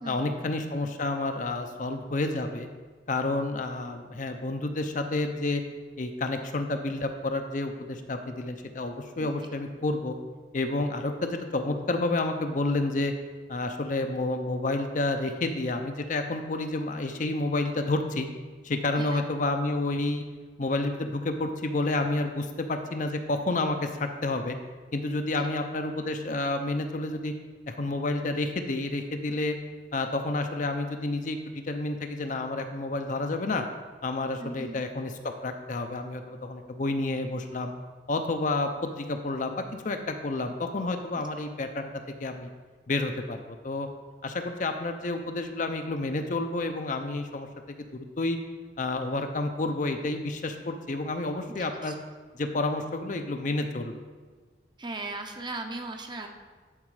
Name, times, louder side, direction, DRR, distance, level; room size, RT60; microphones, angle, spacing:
voice 1, 0.0-2.7 3.1-5.6 6.0-10.2 10.5-13.1 13.5-18.3 18.6-20.2 20.6-24.6 24.9-27.3 27.7-29.5 29.9-33.6 34.0-37.7 38.1-41.9 42.2-42.5 42.9-43.9 44.2-47.5 47.8-48.4 48.8-51.9 52.3-53.9, left 2 dB, 45° left, 6 dB, 0.6 m, -30 dB
voice 2, 34.4-34.8 51.6-51.9 54.8-56.3, right 2 dB, 25° right, 4 dB, 0.7 m, -37 dB
11.0 x 4.3 x 4.8 m, 1.4 s
head